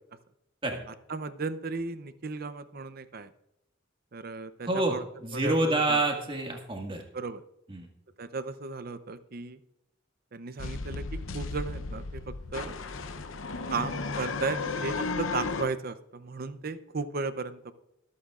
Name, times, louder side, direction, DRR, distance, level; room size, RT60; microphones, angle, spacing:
voice 1, 1.1-3.3 4.1-5.0 5.3-6.0 7.1-7.4 8.2-9.6 10.3-12.8 13.7-17.7, right 4 dB, 50° right, 13 dB, 0.6 m, -35 dB
voice 2, 4.7-7.0 7.7-7.9, right 2 dB, 25° right, 1 dB, 1.8 m, -28 dB
sound 1, 10.6-15.7, left 4 dB, 90° left, 0.7 m, -34 dB
24.0 x 8.5 x 2.4 m, 0.88 s
head